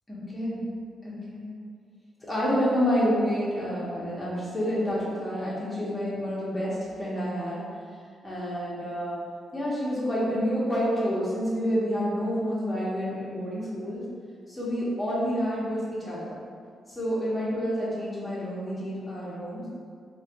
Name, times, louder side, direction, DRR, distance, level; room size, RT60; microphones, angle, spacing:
voice 1, 0.1-0.6 1.0-1.4 2.2-7.6 8.2-9.2 9.5-14.0 14.5-16.4 16.9-19.7, equal, 15° left, -8 dB, 0.8 m, -28 dB
3.6 x 2.2 x 2.8 m, 2.1 s
cardioid pair, 140°, 0 cm